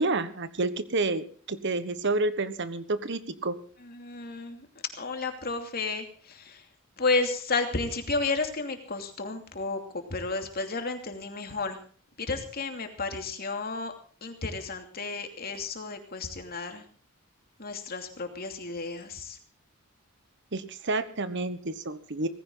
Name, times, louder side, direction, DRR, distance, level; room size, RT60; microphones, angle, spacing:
voice 1, 0.0-3.6 20.5-22.3, right 2 dB, 55° right, 13 dB, 1.3 m, -29 dB
voice 2, 3.8-4.7 5.0-6.7 7.0-11.8 12.2-13.9 14.2-16.8 17.6-19.4, left 3 dB, 45° left, 6 dB, 2.8 m, -32 dB
18.5 x 15.5 x 3.9 m, 0.42 s
head